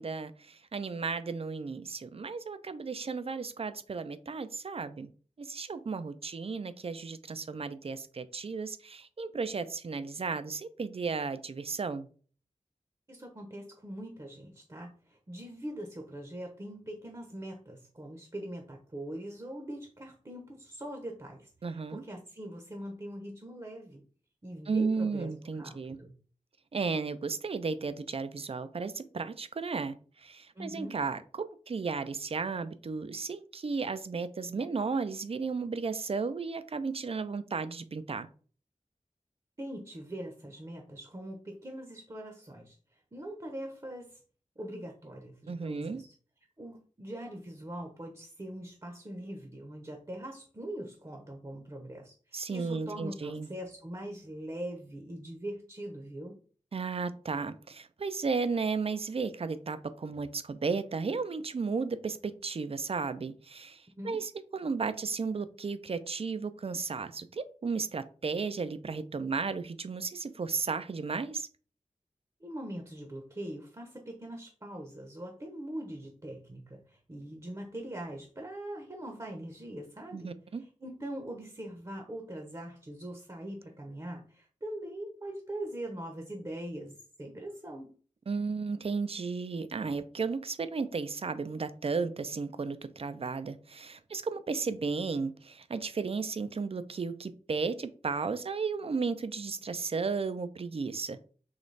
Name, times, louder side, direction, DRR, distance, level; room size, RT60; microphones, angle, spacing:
voice 1, 0.0-5.1 5.4-12.1 21.6-22.0 24.7-26.0 26.7-38.3 45.5-46.0 52.3-53.5 56.7-71.5 80.1-80.6 88.3-101.2, right 4 dB, 50° right, 0.4 m, -34 dB
voice 2, 13.1-24.0 24.4-26.1 30.6-30.9 39.6-42.8 43.1-44.2 44.6-46.1 46.6-56.4 64.0-64.2 72.4-80.3 80.6-87.9, right 1 dB, 30° right, 0.8 m, -42 dB
4.0 x 3.0 x 3.2 m
wide cardioid pair, 55°, 13 cm